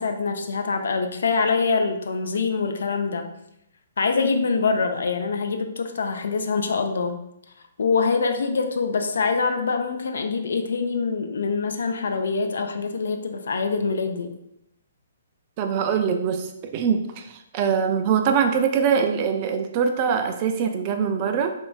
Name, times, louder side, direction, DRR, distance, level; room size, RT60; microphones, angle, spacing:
voice 1, 0.0-3.2 4.0-7.2 7.8-14.3, left 4 dB, 70° left, 6 dB, 0.3 m, -24 dB
voice 2, 15.6-21.5, right 7 dB, 35° right, 6 dB, 0.3 m, -23 dB
2.9 x 2.2 x 2.4 m, 0.80 s
figure-of-eight pair, 130°, 0 cm